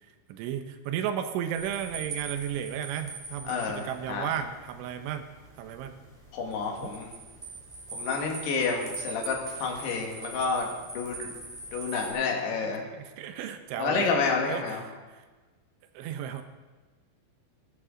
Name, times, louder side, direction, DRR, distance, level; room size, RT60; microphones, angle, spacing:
voice 1, 0.3-5.3 5.6-5.9 6.8-6.9 12.5-14.1 14.5-14.8 15.1-15.2 15.9-16.4, right 9 dB, 80° right, 8 dB, 2.8 m, -34 dB
sound 1, 1.5-12.1, right 4 dB, 15° right, 1.4 m, -42 dB
voice 2, 3.5-4.3 6.3-7.1 7.9-11.3 11.7-12.8 13.8-14.8, left 4 dB, 60° left, 1 dB, 3.3 m, -29 dB
17.0 x 11.5 x 3.7 m, 1.3 s
omnidirectional pair, 6.0 m